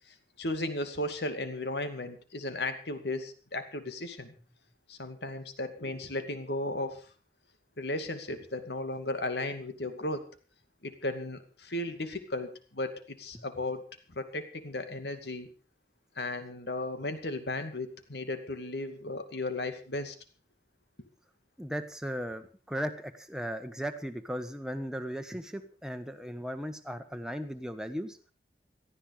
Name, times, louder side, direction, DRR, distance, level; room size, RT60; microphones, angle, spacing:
voice 1, 0.1-4.3 4.9-7.1 7.8-10.3 10.8-15.5 16.2-20.1, left 2 dB, 75° left, 9 dB, 2.4 m, -35 dB
voice 2, 21.6-28.2, equal, 5° right, 7 dB, 1.3 m, -37 dB
18.0 x 13.5 x 5.0 m, 0.36 s
head